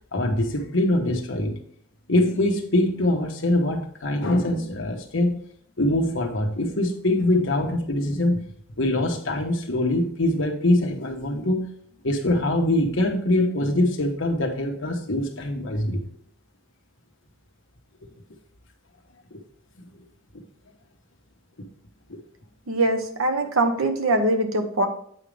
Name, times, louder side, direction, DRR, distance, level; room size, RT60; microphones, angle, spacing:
voice 1, 0.1-1.6 2.1-5.4 5.8-8.4 8.8-11.7 12.0-16.0 19.3-19.4, left 1 dB, 60° left, 3 dB, 1.2 m, -23 dB
voice 2, 22.7-24.9, right 2 dB, 80° right, 6 dB, 1.1 m, -22 dB
8.2 x 5.1 x 3.4 m, 0.63 s
head